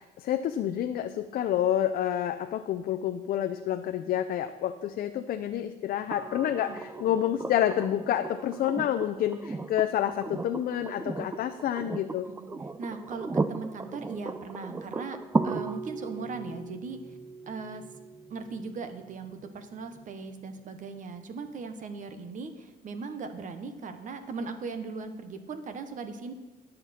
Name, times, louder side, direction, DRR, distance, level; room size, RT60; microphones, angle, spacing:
voice 1, 0.0-12.3, left 11 dB, 60° left, 8 dB, 0.6 m, -28 dB
sound 1, 6.1-20.0 21.8-21.9, right 3 dB, 15° right, 0.4 m, -36 dB
voice 2, 12.8-15.2 15.4-17.2 17.5-17.8 18.3-26.3, right 4 dB, 50° right, 8 dB, 1.1 m, -38 dB
19.0 x 6.7 x 4.3 m, 1.1 s
cardioid pair, 110°, 17 cm